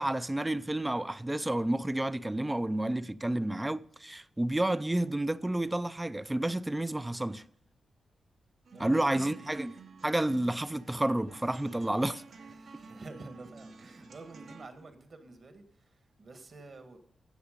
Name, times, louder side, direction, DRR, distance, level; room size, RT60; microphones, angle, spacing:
voice 1, 0.0-7.4 8.8-9.7 10.0-12.2, right 1 dB, 10° right, 0.4 m, -30 dB
sound 1, 8.6-14.7, right 4 dB, 65° right, 1.2 m, -51 dB
voice 2, 8.7-9.7 12.3-17.0, right 3 dB, 45° right, 1.6 m, -49 dB
15.5 x 7.1 x 5.1 m
wide cardioid pair, 135°, 0 cm